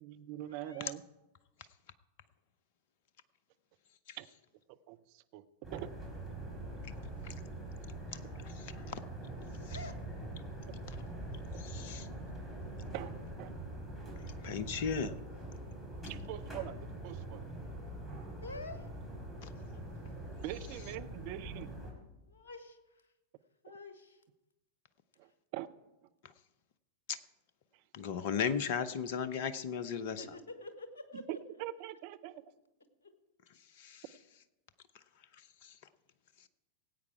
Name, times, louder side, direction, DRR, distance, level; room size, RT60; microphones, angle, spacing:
voice 1, 0.0-1.0 4.2-4.3 4.7-5.9 10.7-10.8 12.9-13.1 13.4-13.5 16.1-17.4 20.4-21.7 25.2-25.7 27.7-27.8 31.1-31.2 31.6-32.4, right 14 dB, 45° right, 11 dB, 0.6 m, -43 dB
voice 2, 0.5-0.9 9.7-9.9 18.4-18.9 22.3-23.1 23.6-24.2 25.2-25.3 30.2-31.4 33.0-33.1, left 2 dB, 65° left, 8 dB, 1.5 m, -48 dB
sound 1, 5.6-21.9, right 1 dB, 5° left, 4.0 m, -44 dB
voice 3, 8.1-9.0 9.7-9.8 10.9-11.0 11.6-12.1 14.4-15.1 19.4-19.5 26.2-26.3 27.1-27.2 27.9-30.2 33.8-34.0 35.4-35.8, left 7 dB, 50° left, 14 dB, 0.7 m, -36 dB
18.0 x 8.5 x 4.7 m, 0.98 s
figure-of-eight pair, 90°, 0 cm